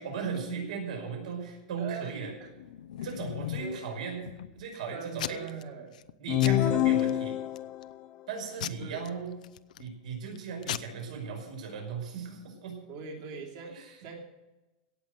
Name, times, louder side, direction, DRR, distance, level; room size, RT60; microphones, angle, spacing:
voice 1, 0.0-2.3 3.0-4.2 4.5-5.4 6.2-7.4 8.3-9.3 9.8-12.8 13.7-13.8, right 5 dB, 65° right, 2 dB, 5.6 m, -37 dB
voice 2, 1.8-2.5 3.0-3.2 3.6-3.8 4.9-6.0 8.8-9.0 12.9-14.2, right 6 dB, 40° right, 0 dB, 3.1 m, -42 dB
Packing tape duct tape / Tearing, 2.4-3.8 4.3-4.8 5.2-5.6 5.9-6.1 6.4-7.1 7.6-7.9 8.6-9.9 10.3-10.4 10.6-10.8, left 12 dB, 75° left, 0.6 m, -38 dB
sound 1, 6.3-7.9, left 13 dB, 25° left, 0.5 m, -25 dB
17.5 x 7.4 x 8.0 m, 1.0 s
supercardioid pair, 180°, 4 cm